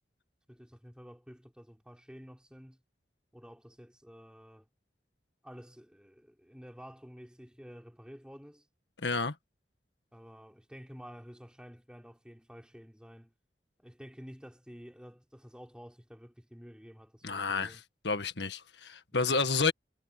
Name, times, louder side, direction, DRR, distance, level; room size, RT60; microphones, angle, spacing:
voice 1, 0.5-2.8 3.3-4.7 5.4-8.7 10.1-13.3 13.8-17.8, equal, 5° right, 4.6 m, -51 dB
voice 2, 9.0-9.3 17.2-19.7, left 4 dB, 85° left, 1.7 m, -30 dB
head